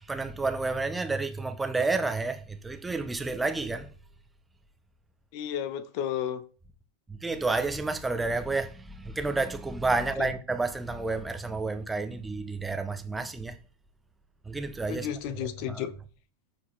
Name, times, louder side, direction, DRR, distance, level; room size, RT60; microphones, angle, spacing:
voice 1, 0.0-3.9 7.1-13.6 14.4-15.1 15.4-15.9, right 3 dB, 10° right, 1.2 m, -30 dB
voice 2, 5.3-6.4 10.2-10.3 14.9-15.9, left 10 dB, 45° left, 1.0 m, -32 dB
14.5 x 5.0 x 3.8 m
figure-of-eight pair, 90°, 0 cm